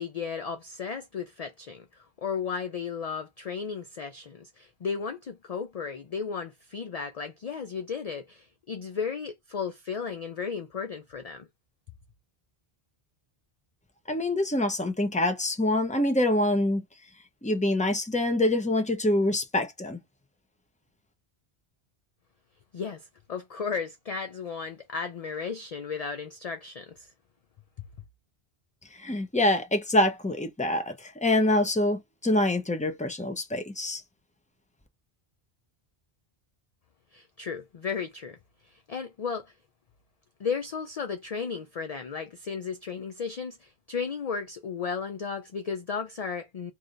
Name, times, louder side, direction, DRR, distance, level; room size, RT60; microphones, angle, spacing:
voice 1, 0.0-1.9 2.2-11.5 22.7-27.1 37.1-38.4 38.7-39.5 40.4-46.7, left 6 dB, 50° left, 0.5 m, -34 dB
voice 2, 14.1-16.8 17.4-20.0 29.0-34.0, left 1 dB, 10° left, 0.7 m, -25 dB
3.2 x 2.7 x 3.8 m
omnidirectional pair, 1.0 m